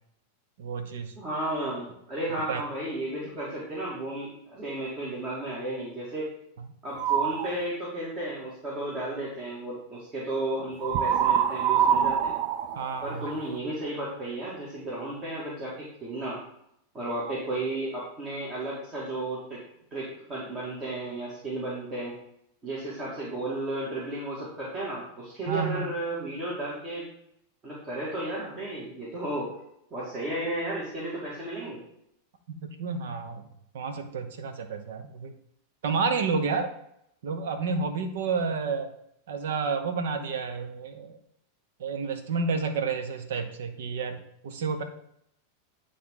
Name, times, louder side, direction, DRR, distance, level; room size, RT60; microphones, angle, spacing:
voice 1, 0.6-1.1 2.4-2.6 12.8-13.3 25.5-25.9 32.6-33.5 33.7-35.3 35.8-36.7 37.2-38.9 39.3-41.2 41.8-44.8, right 5 dB, 70° right, 8 dB, 0.9 m, -30 dB
voice 2, 1.2-6.3 6.8-12.3 13.0-16.4 16.9-19.6 19.9-22.1 22.6-27.1 27.6-29.5 29.9-31.8, right 1 dB, 30° right, -7 dB, 2.1 m, -33 dB
sound 1, 6.9-7.5 10.8-13.6, right 8 dB, 55° right, 0.4 m, -25 dB
9.3 x 3.4 x 3.8 m, 0.75 s
hypercardioid pair, 100°, 0 cm